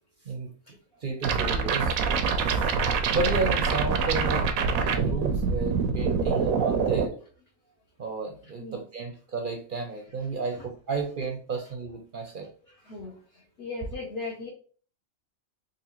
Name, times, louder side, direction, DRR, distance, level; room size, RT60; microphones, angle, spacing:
voice 1, 1.0-1.9 2.5-2.7 3.1-7.1 8.0-12.5, right 3 dB, 55° right, 3 dB, 0.6 m, -32 dB
sound 1, 1.2-7.1, right 5 dB, 90° right, 1.0 m, -25 dB
voice 2, 12.9-13.2 13.6-14.5, left 3 dB, 50° left, -4 dB, 1.0 m, -37 dB
3.7 x 2.7 x 2.9 m, 0.42 s
omnidirectional pair, 1.4 m